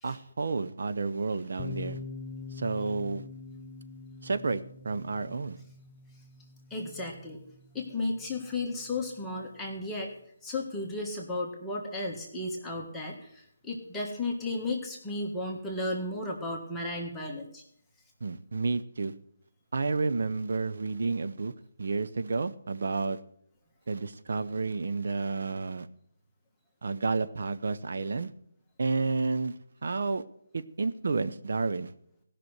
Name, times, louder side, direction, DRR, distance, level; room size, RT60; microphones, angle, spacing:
voice 1, 0.0-2.0 2.5-3.2 4.2-5.6 18.2-19.1 19.7-21.5 21.8-23.2 23.9-25.9 26.8-28.3 28.8-29.5 29.8-30.2 30.5-31.9, right 4 dB, 60° right, 10 dB, 0.8 m, -30 dB
sound 1, 1.6-9.3, left 3 dB, 30° left, 1.2 m, -45 dB
voice 2, 6.7-7.4 7.7-10.1 10.4-17.6, left 2 dB, 5° left, -3 dB, 1.7 m, -34 dB
17.0 x 6.1 x 8.0 m, 0.69 s
figure-of-eight pair, 150°, 0 cm